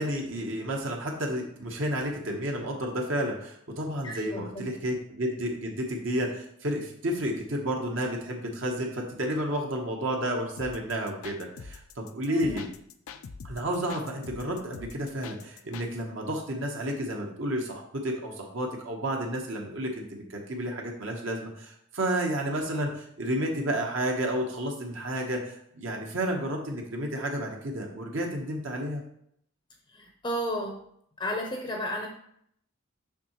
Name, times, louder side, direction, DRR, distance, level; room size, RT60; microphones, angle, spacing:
voice 1, 0.0-12.7 13.4-29.0, right 1 dB, 65° right, 1 dB, 1.0 m, -31 dB
voice 2, 4.0-4.7 12.3-12.6 29.9-30.8 31.2-32.1, equal, 20° left, 2 dB, 0.6 m, -33 dB
sound 1, 10.6-15.9, left 5 dB, 85° left, 0.5 m, -44 dB
7.1 x 5.6 x 3.0 m, 0.70 s
head